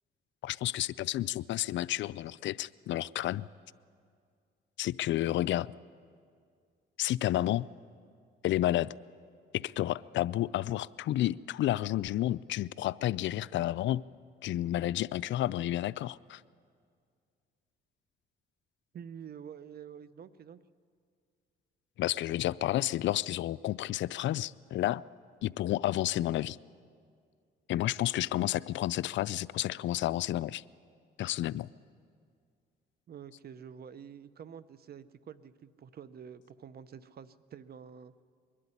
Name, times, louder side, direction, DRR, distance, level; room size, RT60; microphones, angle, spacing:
voice 1, 0.4-3.5 4.8-5.7 7.0-7.7 8.4-8.9 9.5-14.0 14.4-16.4 22.0-25.0 25.4-26.6 27.7-30.6 31.2-31.7, left 14 dB, 70° left, 19 dB, 0.4 m, -31 dB
voice 2, 18.9-20.6 33.1-38.2, right 8 dB, 50° right, 15 dB, 0.7 m, -48 dB
22.0 x 12.5 x 9.9 m, 2.2 s
cardioid pair, 90°, 20 cm